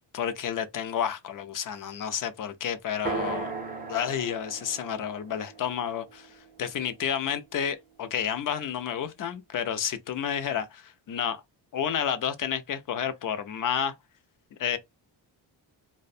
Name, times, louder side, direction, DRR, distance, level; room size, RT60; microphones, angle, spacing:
voice 1, 0.0-3.5 3.9-11.4 11.7-13.9 14.5-14.8, left 8 dB, 45° left, 0.5 m, -30 dB
sound 1, 3.1-7.0, right 4 dB, 20° right, 0.4 m, -37 dB
2.4 x 2.1 x 2.6 m
cardioid pair, 120°, 46 cm